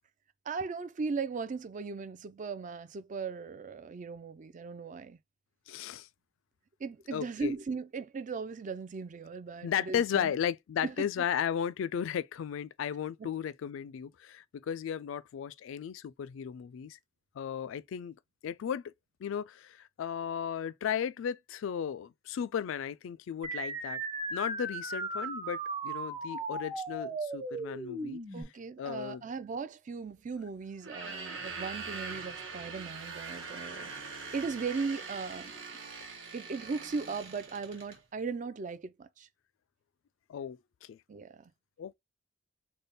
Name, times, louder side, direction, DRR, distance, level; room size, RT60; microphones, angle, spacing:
voice 1, 0.5-5.2 6.8-10.3 10.8-11.1 13.2-13.3 28.3-33.9 34.3-35.5 36.3-39.3 41.1-41.5, right 4 dB, 40° right, 0.4 m, -38 dB
voice 2, 5.7-6.1 7.1-7.5 9.6-17.0 17.4-18.2 18.4-18.9 19.2-24.0 24.3-28.2 28.8-29.2 40.3-41.0 41.8-41.9, left 8 dB, 70° left, 0.3 m, -35 dB
sound 1, 23.4-28.4, right 2 dB, 25° right, 1.0 m, -37 dB
sound 2, 30.8-38.0, right 4 dB, 70° right, 1.1 m, -43 dB
3.4 x 2.2 x 4.0 m
head